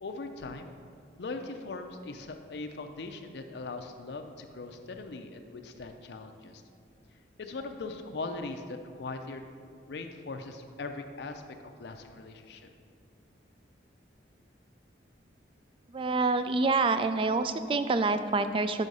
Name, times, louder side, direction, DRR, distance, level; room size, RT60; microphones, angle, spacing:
voice 1, 0.0-0.7 1.2-6.6 7.4-9.5 9.9-12.7, left 3 dB, 65° left, 5 dB, 0.5 m, -40 dB
voice 2, 15.9-18.9, right 3 dB, 30° right, 10 dB, 0.3 m, -27 dB
6.3 x 5.5 x 5.3 m, 2.2 s
head